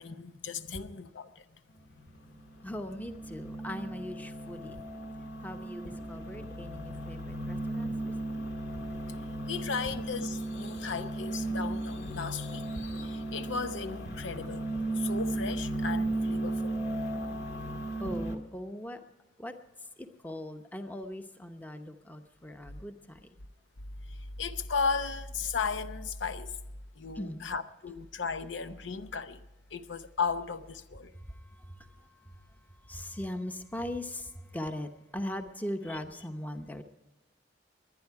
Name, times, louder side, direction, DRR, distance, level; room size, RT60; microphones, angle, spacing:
voice 1, 0.0-1.4 4.8-4.9 6.4-6.5 9.4-14.6 14.9-16.8 24.1-26.5 27.0-29.4 29.7-31.1 35.9-36.0, left 5 dB, 90° left, 0.7 m, -35 dB
sound 1, 1.9-18.4, right 1 dB, 65° left, 1.8 m, -35 dB
voice 2, 2.6-4.8 5.4-8.5 18.0-19.0 19.4-19.5 20.0-23.3 27.2-27.4 31.1-32.1 32.8-36.8, left 1 dB, 10° left, 0.8 m, -40 dB
22.5 x 9.8 x 4.7 m
head